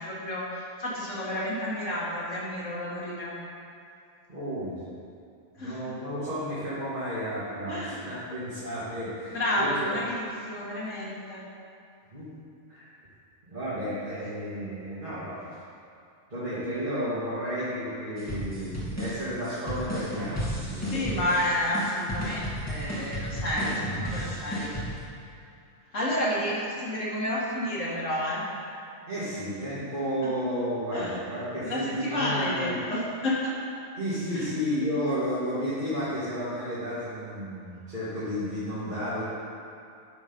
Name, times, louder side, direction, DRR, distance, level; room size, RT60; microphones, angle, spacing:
voice 1, 0.0-3.3 5.6-6.0 7.7-8.0 9.2-11.4 20.8-24.7 25.9-28.4 30.2-30.3 30.9-31.2 31.6-33.5 34.3-34.5 38.8-38.9, left 1 dB, 65° left, -6 dB, 2.3 m, -30 dB
voice 2, 4.3-4.7 5.6-10.0 12.1-12.3 12.7-12.9 13.5-15.5 16.3-21.3 29.1-32.8 34.0-39.2, equal, 35° right, -14 dB, 2.3 m, -32 dB
sound 1, 18.2-25.0, equal, 10° left, 2.3 m, -33 dB
11.5 x 4.1 x 5.4 m, 2.5 s
omnidirectional pair, 1.4 m